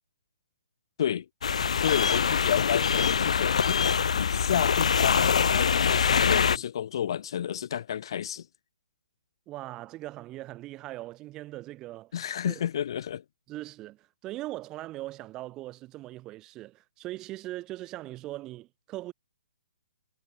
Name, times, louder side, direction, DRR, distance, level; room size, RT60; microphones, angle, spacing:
waves at cliffside resort beach, 1.4-6.6, left 6 dB, 75° left, 0.4 m, -24 dB
voice 1, 1.8-3.8 4.1-8.5 12.1-13.2, left 9 dB, 45° left, 1.1 m, -31 dB
voice 2, 9.5-12.1 12.4-12.6 13.5-19.1, right 17 dB, 15° right, 1.5 m, -40 dB
hypercardioid pair, 165°, 3 cm